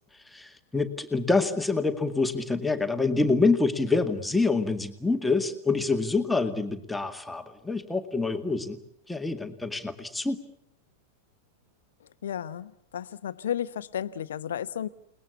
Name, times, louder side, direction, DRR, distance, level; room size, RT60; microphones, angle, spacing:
voice 1, 0.3-8.8 9.1-10.4, left 3 dB, 5° left, 6 dB, 2.2 m, -26 dB
voice 2, 12.0-14.9, left 9 dB, 65° left, 13 dB, 1.1 m, -33 dB
29.5 x 20.5 x 8.3 m, 0.71 s
figure-of-eight pair, 90°, 0 cm